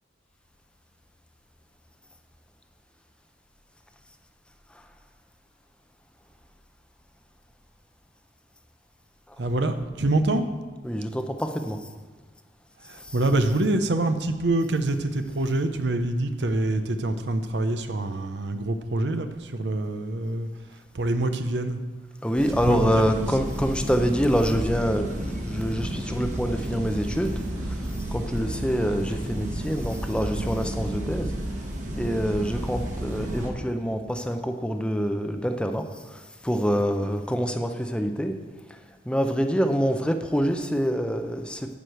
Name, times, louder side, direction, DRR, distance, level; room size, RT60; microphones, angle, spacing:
voice 1, 9.4-10.4 12.8-21.8 22.5-23.4, right 2 dB, 70° right, 8 dB, 0.7 m, -26 dB
voice 2, 10.8-11.8 13.0-13.1 22.2-31.3 32.0-38.3 38.7-38.8 39.1-41.8, equal, 5° left, 6 dB, 0.6 m, -26 dB
sound 1, 22.4-33.5, right 1 dB, 40° right, 1.5 m, -31 dB
10.0 x 4.9 x 7.8 m, 1.4 s
head